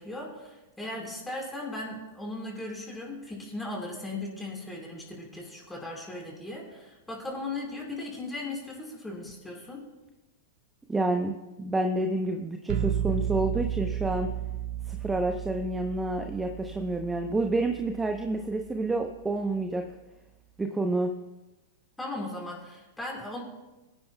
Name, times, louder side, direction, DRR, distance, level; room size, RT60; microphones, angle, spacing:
voice 1, 0.0-9.8 22.0-23.4, left 2 dB, 10° left, -2 dB, 4.6 m, -37 dB
voice 2, 10.9-14.3 14.9-19.8 20.6-21.1, right 2 dB, 10° right, 5 dB, 0.8 m, -29 dB
sound 1, 12.7-18.5, right 11 dB, 55° right, 0.7 m, -33 dB
24.5 x 10.0 x 2.3 m, 1.1 s
hypercardioid pair, 105°, 0 cm